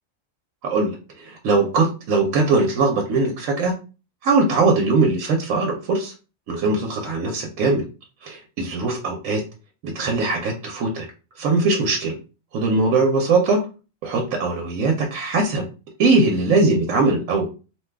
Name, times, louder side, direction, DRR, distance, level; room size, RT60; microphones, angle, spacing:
voice 1, 0.6-3.7 4.2-6.1 6.5-7.8 8.2-9.4 9.8-11.1 11.4-12.2 12.5-13.6 14.0-15.7 16.0-17.5, right 3 dB, 90° right, 2 dB, 1.0 m, -20 dB
2.9 x 2.2 x 3.3 m, 0.33 s
omnidirectional pair, 1.3 m